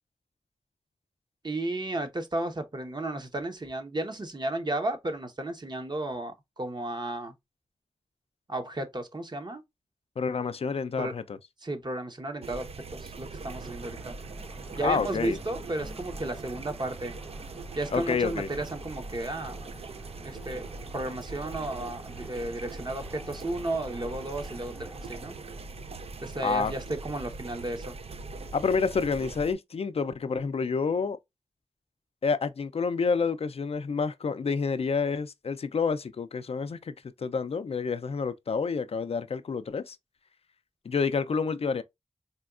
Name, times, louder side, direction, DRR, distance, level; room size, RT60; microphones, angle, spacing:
voice 1, 1.4-7.3 8.5-9.6 11.0-11.1 11.6-14.2 14.7-17.1 17.8-19.6 20.2-20.7 20.9-25.3 26.2-28.0, right 2 dB, 45° right, 0.8 m, -33 dB
voice 2, 10.2-11.4 14.8-15.4 17.9-18.5 26.4-26.7 28.5-31.2 32.2-40.0 40.9-41.8, left 5 dB, 70° left, 0.3 m, -28 dB
sound 1, 12.4-29.5, right 3 dB, 70° right, 0.4 m, -41 dB
sound 2, 13.5-25.6, equal, 5° right, 0.5 m, -50 dB
4.2 x 2.3 x 2.3 m
wide cardioid pair, 50°, 11 cm